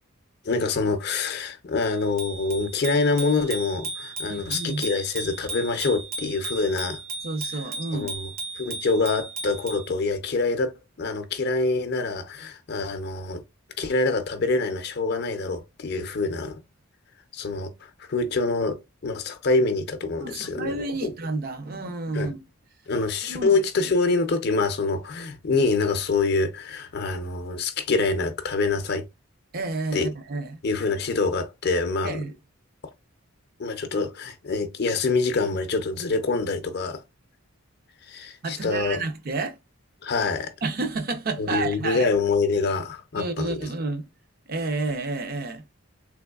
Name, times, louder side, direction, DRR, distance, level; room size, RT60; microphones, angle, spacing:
voice 1, 0.4-7.0 7.9-8.3 8.6-10.7 11.0-13.4 13.8-16.5 17.3-21.1 22.1-22.3 22.9-29.0 29.9-30.1 30.6-32.2 33.6-37.0 38.1-39.0 40.0-40.5 41.4-43.7, left 3 dB, 50° left, 0.5 m, -25 dB
Bicycle bell, 1.8-9.9, right 3 dB, 75° right, 1.2 m, -35 dB
voice 2, 4.3-4.8 7.2-8.1 20.2-22.4 23.3-23.5 29.5-30.6 32.0-32.3 38.4-39.6 40.6-42.1 43.2-44.1 44.5-45.6, right 3 dB, 45° right, 0.5 m, -30 dB
3.4 x 3.1 x 2.3 m
head